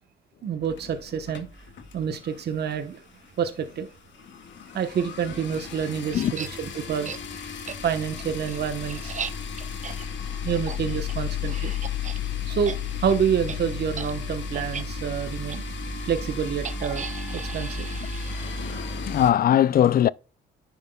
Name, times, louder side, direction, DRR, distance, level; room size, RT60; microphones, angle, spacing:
voice 1, 0.4-1.5 1.9-3.0 3.4-3.9 4.7-7.2 7.8-9.2 10.4-11.7 12.5-15.6 16.0-17.1 17.3-17.9 18.7-18.8, right 8 dB, 55° right, 1.0 m, -28 dB
sound 1, 0.6-2.4 2.7-2.9 3.2-3.3 3.5-19.3, left 5 dB, 70° left, 1.8 m, -34 dB
sound 2, 6.1-6.5 7.0-7.2 7.7-7.8 8.2-12.2 12.5-12.8 13.0-13.2 13.5-13.6 13.9-14.1 14.5-14.8 15.5-15.6 16.6-19.0, right 6 dB, 40° right, 0.7 m, -38 dB
voice 2, 18.3-20.1, left 11 dB, 50° left, 0.4 m, -21 dB
10.0 x 7.1 x 2.2 m
cardioid pair, 90°, 20 cm